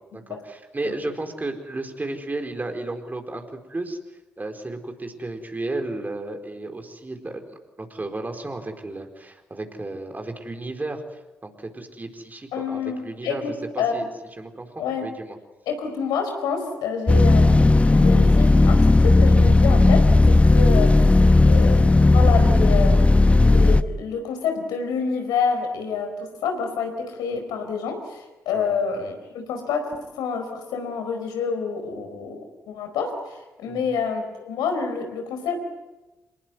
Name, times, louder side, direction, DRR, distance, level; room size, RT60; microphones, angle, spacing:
voice 1, 0.1-4.0 4.4-7.4 7.8-14.0 14.4-15.4 28.5-28.8 33.7-33.9, right 2 dB, 25° right, 5 dB, 4.5 m, -33 dB
voice 2, 12.5-13.9 14.8-15.1 15.7-21.1 21.4-29.9 30.1-35.6, left 5 dB, 70° left, 5 dB, 4.6 m, -28 dB
sound 1, 17.1-23.8, left 2 dB, 15° left, 1.1 m, -15 dB
26.5 x 20.5 x 9.5 m, 1.1 s
figure-of-eight pair, 40°, 7 cm